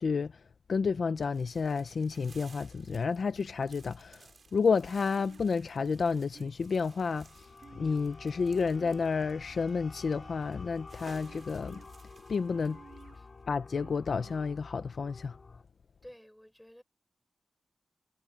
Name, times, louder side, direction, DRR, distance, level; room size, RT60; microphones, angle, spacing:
voice 1, 0.0-7.5 7.7-11.8 12.3-12.8 13.5-15.4, left 5 dB, 55° left, 0.7 m, -31 dB
sound 1, 1.1-13.4, right 4 dB, 45° right, 6.6 m, -59 dB
sound 2, 5.2-5.8 6.3-6.9 7.6-8.3 8.7-9.4 10.0-10.7 11.3-11.9 12.5-13.2 13.7-14.4, right 6 dB, 70° right, 1.3 m, -55 dB
sound 3, 6.3-15.6, left 4 dB, 35° left, 5.4 m, -50 dB
voice 2, 16.0-16.8, equal, 5° left, 4.3 m, -52 dB
wide cardioid pair, 180°, 0 cm